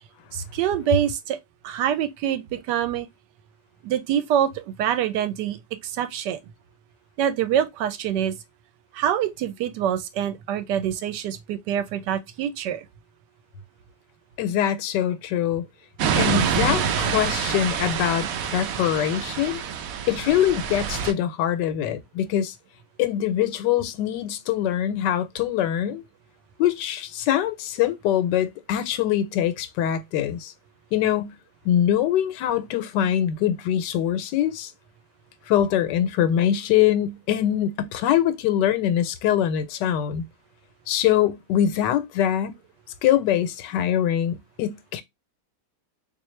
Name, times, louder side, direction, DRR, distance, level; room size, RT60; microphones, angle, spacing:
voice 1, 0.3-1.4 1.6-3.1 3.8-5.6 5.8-6.4 7.2-8.3 8.9-12.8, right 10 dB, 90° right, 1.2 m, -25 dB
voice 2, 14.4-15.7 16.2-19.6 20.1-22.5 23.0-26.0 26.6-30.5 30.9-31.4 31.6-34.7 35.5-40.3 40.9-42.5 43.0-45.0, left 11 dB, 85° left, 1.2 m, -23 dB
sound 1, 16.0-21.1, right 7 dB, 70° right, 0.9 m, -26 dB
3.7 x 2.8 x 3.1 m
omnidirectional pair, 1.8 m